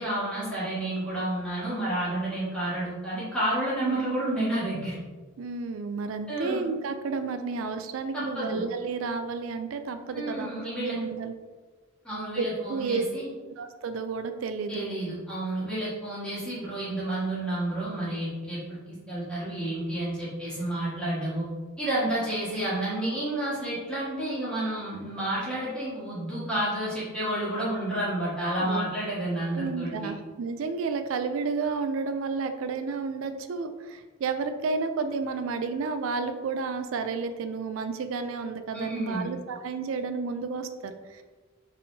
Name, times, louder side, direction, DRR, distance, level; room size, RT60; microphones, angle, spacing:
voice 1, 0.0-4.9 6.3-6.7 8.1-8.7 10.1-11.0 12.0-13.3 14.7-21.5 21.8-30.1 38.7-39.3, right 1 dB, 5° left, -9 dB, 1.5 m, -30 dB
voice 2, 5.4-11.3 12.4-13.0 13.6-15.0 28.6-29.2 29.5-41.2, right 4 dB, 70° right, 8 dB, 0.4 m, -31 dB
4.1 x 3.6 x 2.7 m, 1.3 s
head